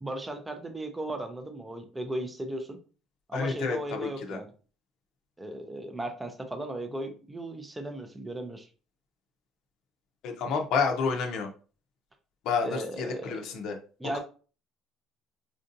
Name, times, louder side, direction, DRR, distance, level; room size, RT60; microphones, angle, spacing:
voice 1, 0.0-2.8 3.3-4.5 5.4-8.7 12.6-13.4 14.0-14.2, right 1 dB, 10° right, 6 dB, 0.4 m, -36 dB
voice 2, 3.3-4.4 10.2-11.5 12.4-13.8 14.1-14.2, left 5 dB, 55° left, 4 dB, 0.6 m, -29 dB
4.4 x 2.6 x 2.5 m, 0.37 s
cardioid pair, 175°, 0 cm